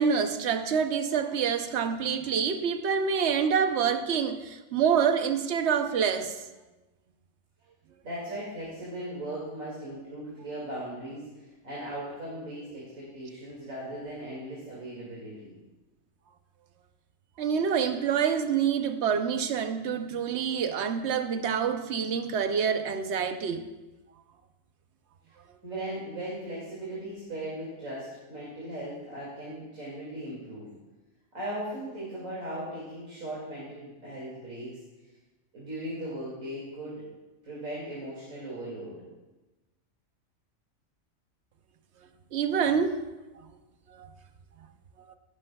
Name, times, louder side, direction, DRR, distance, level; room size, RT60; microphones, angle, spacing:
voice 1, 0.0-6.3 17.4-23.7 42.3-43.0 43.9-44.1, right 7 dB, 60° right, 1.0 m, -27 dB
voice 2, 8.0-15.5 25.6-30.7 31.3-34.8 35.5-37.0 37.4-39.0, right 1 dB, 85° right, 2.9 m, -38 dB
15.5 x 12.0 x 2.3 m
omnidirectional pair, 1.4 m